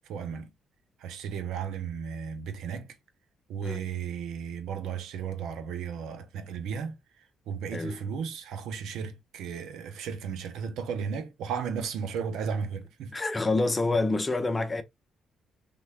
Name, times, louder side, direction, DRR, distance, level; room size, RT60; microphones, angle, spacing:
voice 1, 0.1-0.5 1.0-2.9 3.5-7.0 7.5-13.2, right 6 dB, 85° right, 0.6 m, -34 dB
voice 2, 13.1-14.8, left 2 dB, 20° left, 0.6 m, -27 dB
3.2 x 2.2 x 3.2 m
cardioid pair, 90°, 0 cm